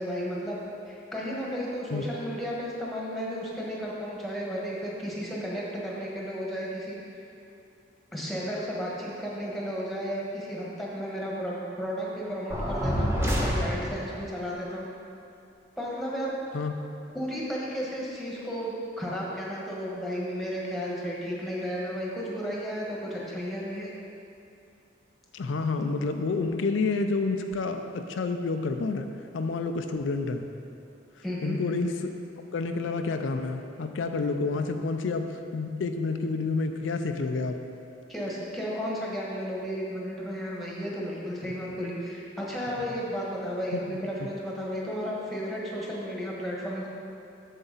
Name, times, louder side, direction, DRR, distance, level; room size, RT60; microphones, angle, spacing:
voice 1, 0.0-7.2 8.1-14.9 15.8-16.3 17.1-23.9 31.2-31.6 38.1-46.9, equal, ahead, -5 dB, 1.3 m, -33 dB
sound 1, 12.5-14.2, equal, 15° right, 0.9 m, -27 dB
voice 2, 25.3-29.1 29.3-30.5 31.4-32.1 32.5-37.6 43.7-44.0, left 3 dB, 85° left, 6 dB, 0.5 m, -29 dB
7.8 x 7.1 x 3.9 m, 2.6 s
head